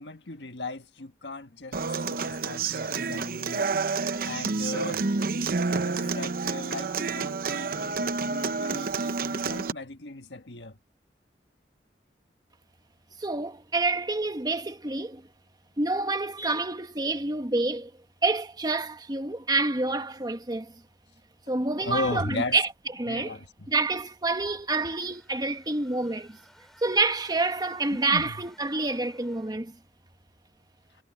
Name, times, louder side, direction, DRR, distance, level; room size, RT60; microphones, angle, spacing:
voice 1, 0.0-3.7 4.2-5.2 5.7-10.8 21.8-22.6 23.1-23.7 27.9-28.4, left 3 dB, 85° left, 1.6 m, -37 dB
Human voice / Acoustic guitar, 1.7-9.7, right 4 dB, 55° right, 0.8 m, -29 dB
voice 2, 13.2-15.2 15.8-17.9 18.2-20.8 21.5-22.7 23.0-23.4 23.7-26.4 26.8-29.8, right 3 dB, 25° right, 1.3 m, -28 dB
sound 1, 24.8-29.7, equal, ahead, 6.3 m, -58 dB
head